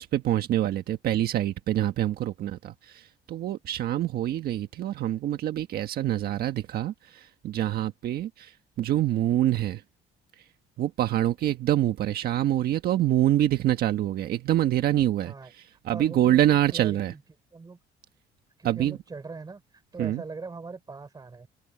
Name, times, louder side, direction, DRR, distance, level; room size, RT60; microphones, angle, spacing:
voice 1, 0.0-9.8 10.8-17.1 18.6-19.0 20.0-20.2, right 12 dB, 65° right, 1.5 m, -26 dB
voice 2, 15.9-17.2 17.5-17.8 18.6-19.6 19.9-21.5, right 4 dB, 25° right, 3.8 m, -41 dB
open air
cardioid pair, 110°, 17 cm